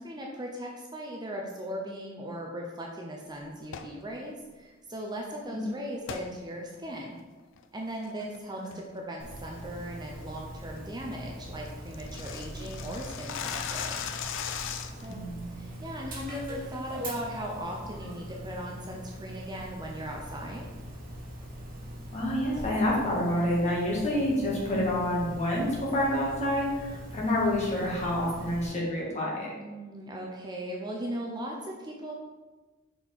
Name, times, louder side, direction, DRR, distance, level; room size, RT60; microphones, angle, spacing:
voice 1, 0.0-7.2 7.7-14.0 15.0-15.3 15.6-20.6 29.6-32.1, equal, 20° right, -1 dB, 0.6 m, -38 dB
sound 1, 3.6-4.0 6.1-6.3 6.8-6.9 7.4-7.6 8.0-8.4 8.7-9.0 9.3-9.4 9.8-10.1 10.4-10.5 10.8-10.9 11.1-11.2 11.5-15.1, left 8 dB, 65° left, 0.4 m, -37 dB
Dog, 9.2-28.7, equal, 45° right, 1.4 m, -42 dB
voice 2, 15.1-15.8 22.1-29.5, left 1 dB, 35° left, -5 dB, 1.8 m, -28 dB
5.5 x 4.2 x 4.5 m, 1.2 s
head